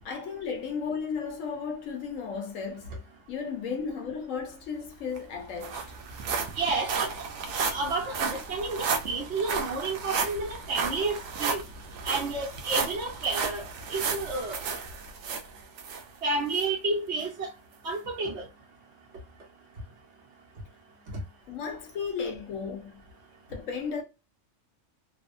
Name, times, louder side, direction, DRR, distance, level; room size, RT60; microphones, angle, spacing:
voice 1, 0.0-3.0 3.3-5.9 21.5-23.0 23.5-24.0, left 5 dB, 75° left, 1.1 m, -34 dB
sound 1, 4.8-4.9 5.2-16.0 16.5-16.7 17.2-17.3, right 5 dB, 80° right, 1.0 m, -33 dB
voice 2, 6.6-6.9 7.6-11.6 12.0-13.6 13.9-14.6 16.2-17.5 17.8-18.4, right 3 dB, 55° right, 1.3 m, -30 dB
3.3 x 2.0 x 2.5 m
omnidirectional pair, 1.4 m